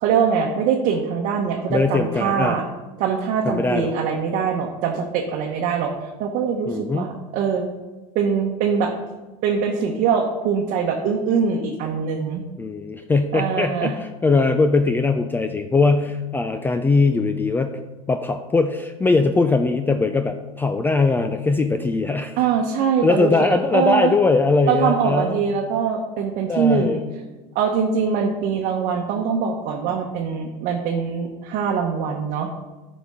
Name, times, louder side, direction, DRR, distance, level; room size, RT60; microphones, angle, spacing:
voice 1, 0.0-2.6 3.0-7.6 8.1-8.9 9.4-12.4 13.3-13.9 22.4-24.1 24.7-27.0 27.5-32.5, right 6 dB, 55° right, 0 dB, 1.0 m, -23 dB
voice 2, 1.7-2.6 3.4-3.9 6.7-7.1 12.6-17.8 18.1-22.4 23.0-25.4 26.5-27.0, left 3 dB, 10° left, 7 dB, 0.4 m, -20 dB
9.8 x 5.2 x 3.6 m, 1.2 s
supercardioid pair, 105°, 17 cm